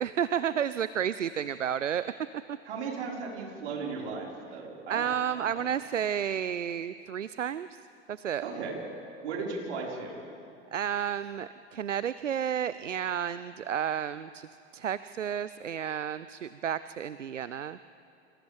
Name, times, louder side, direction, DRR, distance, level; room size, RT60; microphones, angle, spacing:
voice 1, 0.0-2.1 2.5-2.6 4.9-7.8 8.1-8.4 10.7-17.8, right 9 dB, 90° right, 15 dB, 0.5 m, -31 dB
voice 2, 2.6-5.0 5.3-5.7 8.4-8.8 9.2-10.2, right 4 dB, 65° right, -3 dB, 5.1 m, -36 dB
30.0 x 26.5 x 3.5 m, 2.7 s
figure-of-eight pair, 85°, 36 cm